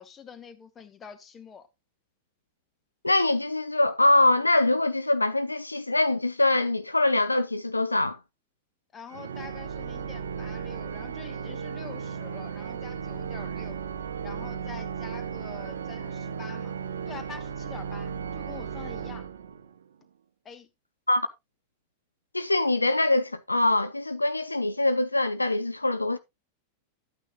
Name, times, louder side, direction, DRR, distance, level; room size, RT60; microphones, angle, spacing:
voice 1, 0.0-1.7 8.9-13.8 14.2-16.8 17.1-19.3 20.4-20.7, left 6 dB, 25° left, 1.2 m, -46 dB
voice 2, 3.0-8.2 21.1-21.3 22.3-26.2, left 2 dB, 85° left, 0.5 m, -23 dB
Organ, 9.1-19.9, right 6 dB, 65° right, 0.7 m, -35 dB
12.0 x 9.0 x 2.3 m
figure-of-eight pair, 90°, 0 cm